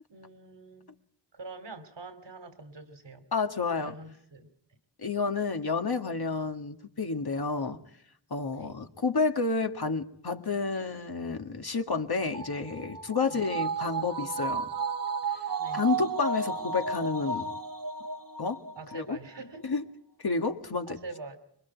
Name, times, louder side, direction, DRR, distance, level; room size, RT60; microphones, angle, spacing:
voice 1, 0.1-0.9 1.3-3.3 3.8-4.5 8.5-8.8 13.2-13.4 15.6-16.1 18.8-19.7 20.9-21.4, right 3 dB, 85° right, 9 dB, 2.9 m, -45 dB
voice 2, 3.3-4.0 5.0-7.8 8.3-14.7 15.7-17.5 18.4-18.6 18.9-19.2 19.6-19.8 20.2-21.0, left 4 dB, 60° left, 5 dB, 1.9 m, -30 dB
sound 1, 12.3-19.0 19.3-19.4, right 4 dB, 50° right, 1.3 m, -33 dB
25.5 x 23.0 x 4.7 m, 0.72 s
wide cardioid pair, 60°, 42 cm